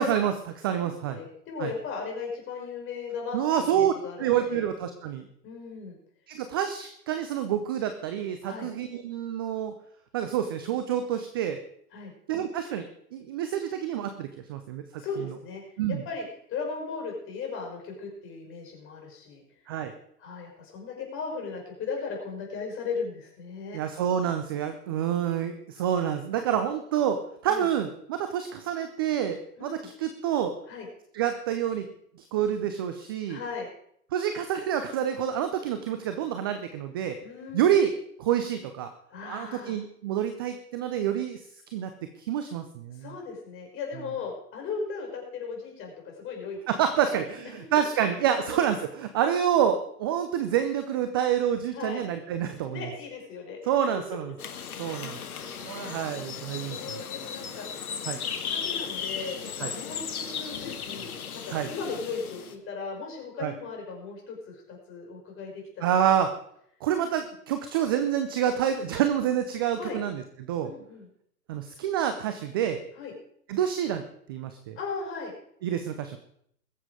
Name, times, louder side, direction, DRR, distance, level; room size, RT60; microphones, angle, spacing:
voice 1, 0.0-1.2 1.6-1.7 3.3-3.9 4.2-5.3 6.3-9.7 10.1-11.6 12.3-12.9 13.1-15.0 15.8-16.0 19.7-19.9 23.7-30.5 31.1-31.9 32.3-33.4 34.1-37.2 37.5-37.9 38.2-38.9 39.2-41.4 41.7-41.9 42.2-43.1 46.7-52.8 53.6-54.3 54.8-55.2 55.6-57.0 58.1-58.2 59.6-59.7 61.5-61.7 63.4-63.5 65.8-66.3 66.8-70.7 71.5-72.8 73.5-74.0 74.3-74.8 75.6-76.2, right 9 dB, 15° right, 9 dB, 0.4 m, -28 dB
voice 2, 0.7-4.6 5.4-6.0 8.4-8.7 11.9-12.1 15.0-15.6 15.9-19.4 19.7-19.8 20.2-23.8 27.5-27.7 29.6-29.9 30.7-30.9 33.3-33.7 37.2-37.7 39.1-39.8 42.9-46.6 47.0-47.1 47.6-47.7 48.3-48.6 51.7-52.0 52.7-53.7 54.8-56.1 56.6-57.9 58.3-66.0 69.7-70.0 70.6-71.1 73.0-73.1 74.8-75.3, left 5 dB, 25° left, 1 dB, 5.7 m, -37 dB
sound 1, 54.4-62.5, left 7 dB, 65° left, 1.8 m, -36 dB
22.0 x 7.4 x 4.9 m, 0.68 s
figure-of-eight pair, 120°, 46 cm